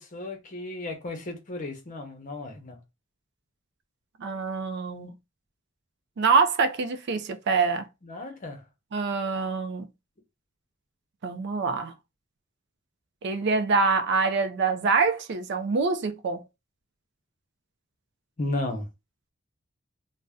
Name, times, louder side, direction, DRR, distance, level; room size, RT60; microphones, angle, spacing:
voice 1, 0.0-2.8 8.0-8.6 18.4-18.9, left 2 dB, 40° left, 0.8 m, -34 dB
voice 2, 4.2-5.1 6.2-7.9 8.9-9.9 11.2-11.9 13.2-16.4, right 4 dB, 55° right, 0.4 m, -25 dB
2.6 x 2.1 x 3.4 m
head